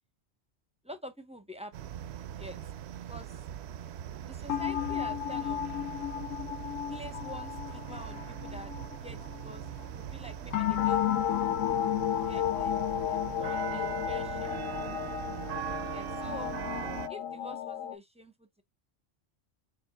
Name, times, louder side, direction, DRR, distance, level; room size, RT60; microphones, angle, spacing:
voice 1, 0.8-1.9 2.3-2.6 3.1-3.3 4.2-5.6 6.9-8.7 9.0-9.6 9.9-11.1 12.2-12.8 13.1-15.0 15.9-16.5 17.1-18.6, equal, 5° right, 0.6 m, -47 dB
sound 1, 1.7-17.1, right 10 dB, 65° right, 0.7 m, -41 dB
sound 2, 4.5-9.9 10.5-18.0, left 10 dB, 85° left, 1.0 m, -33 dB
7.0 x 2.6 x 2.2 m
omnidirectional pair, 1.3 m